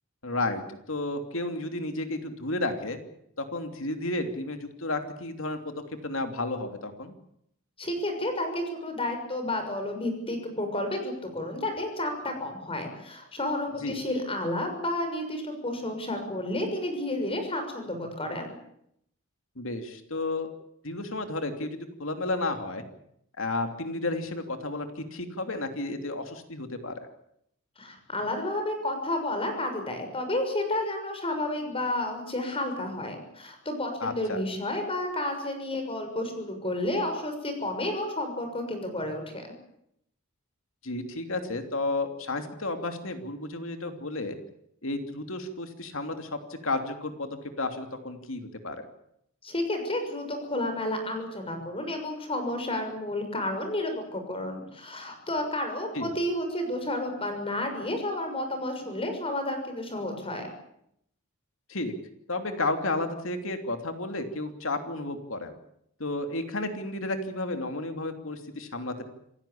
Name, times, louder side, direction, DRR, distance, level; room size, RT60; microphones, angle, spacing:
voice 1, 0.2-0.6 0.9-3.0 3.4-7.1 13.8-14.0 19.6-20.5 20.8-22.8 23.4-26.9 34.0-34.4 40.8-44.4 44.8-48.9 55.9-56.1 61.7-61.9 62.3-65.5 66.0-69.1, left 2 dB, 65° left, 6 dB, 3.0 m, -32 dB
voice 2, 7.8-18.6 27.8-39.5 49.4-60.5, left 1 dB, 25° left, 6 dB, 6.5 m, -31 dB
28.0 x 16.5 x 8.7 m, 0.75 s
head